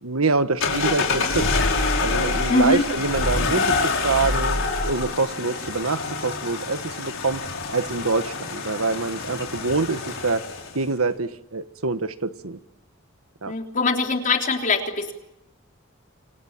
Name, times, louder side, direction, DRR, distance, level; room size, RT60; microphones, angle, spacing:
voice 1, 0.0-1.5 2.0-4.6 4.8-7.4 7.7-10.4 10.7-12.6 13.4-13.5, right 3 dB, 80° right, 11 dB, 1.4 m, -25 dB
sound 1, 0.6-10.8, left 3 dB, 65° left, 5.7 m, -26 dB
voice 2, 2.5-2.8 13.5-15.1, left 3 dB, 40° left, 3 dB, 3.6 m, -22 dB
29.0 x 25.5 x 7.5 m, 0.86 s
head